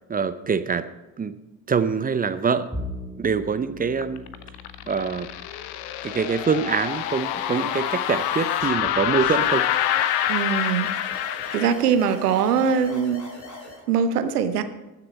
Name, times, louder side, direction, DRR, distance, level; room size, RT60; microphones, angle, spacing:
voice 1, 0.1-0.9 1.2-1.3 1.7-2.7 3.2-4.2 4.9-5.3 6.0-9.7, right 5 dB, 20° right, 13 dB, 0.6 m, -24 dB
Bowed string instrument, 2.7-9.2, left 1 dB, 5° right, 1.7 m, -41 dB
sound 1, 4.0-11.7, left 11 dB, 55° left, 0.9 m, -26 dB
sound 2, 6.7-13.8, left 2 dB, 35° left, 2.7 m, -40 dB
voice 2, 10.3-10.9 11.5-13.2 13.9-14.6, right 7 dB, 75° right, 10 dB, 0.9 m, -22 dB
19.0 x 6.8 x 4.2 m, 1.1 s
figure-of-eight pair, 55°, 47 cm